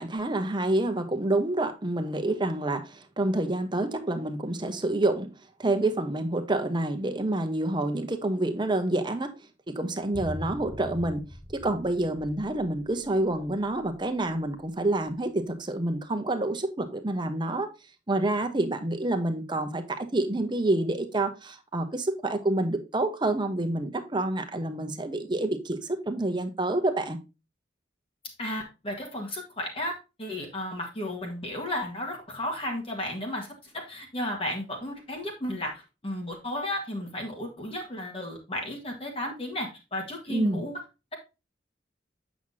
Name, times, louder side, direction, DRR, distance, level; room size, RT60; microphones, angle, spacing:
voice 1, 0.0-5.3 5.6-9.3 9.7-11.2 11.6-17.7 18.1-27.2 40.3-40.6, right 2 dB, 25° right, 0.9 m, -28 dB
sound 1, 10.1-14.4 14.6-14.7, left 1 dB, 10° left, 0.8 m, -42 dB
voice 2, 28.4-40.8, left 1 dB, 30° left, 1.7 m, -34 dB
8.0 x 6.1 x 2.7 m
head